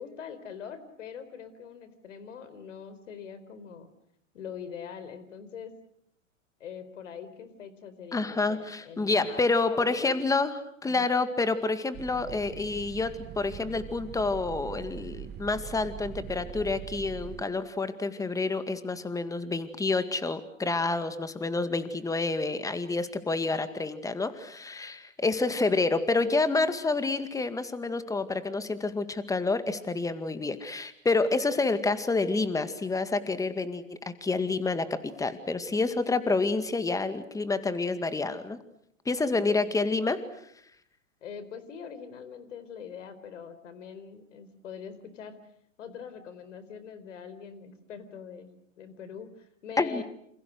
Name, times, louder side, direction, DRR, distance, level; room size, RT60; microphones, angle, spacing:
voice 1, 0.0-3.9 4.3-5.7 6.6-10.2 10.8-11.1 39.3-39.7 41.2-45.4 45.8-48.5 48.8-50.0, left 7 dB, 65° left, 13 dB, 4.5 m, -43 dB
voice 2, 8.1-38.6 39.1-40.2 49.8-50.0, left 3 dB, 10° left, 11 dB, 2.1 m, -28 dB
sound 1, 11.9-17.4, right 9 dB, 25° right, 1.7 m, -42 dB
28.5 x 28.0 x 6.4 m, 0.72 s
figure-of-eight pair, 105°, 40 cm